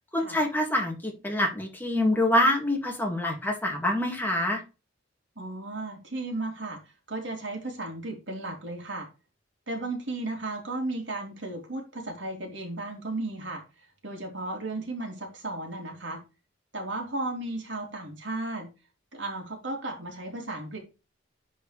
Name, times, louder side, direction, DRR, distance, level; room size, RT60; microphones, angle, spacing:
voice 1, 0.1-4.6, left 1 dB, 10° left, 1 dB, 2.1 m, -26 dB
voice 2, 5.4-6.8 7.1-9.1 9.7-13.6 14.0-16.2 16.7-18.7 19.1-20.8, right 2 dB, 70° right, 1 dB, 3.0 m, -34 dB
10.5 x 4.6 x 3.3 m, 0.28 s
head